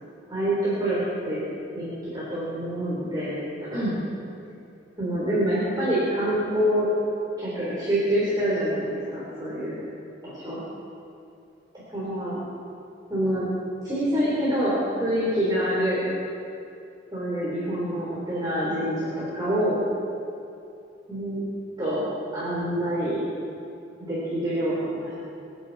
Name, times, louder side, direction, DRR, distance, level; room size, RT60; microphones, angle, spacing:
voice 1, 0.3-1.4 1.7-3.4 3.7-4.0 5.0-6.9 7.4-9.8 10.2-10.6 11.9-12.4 13.1-13.5 13.8-16.0 17.1-19.8 21.1-21.4 21.8-22.1 22.3-23.2 24.0-25.1, equal, 20° right, -9 dB, 3.8 m, -26 dB
26.0 x 9.3 x 4.2 m, 2.7 s
head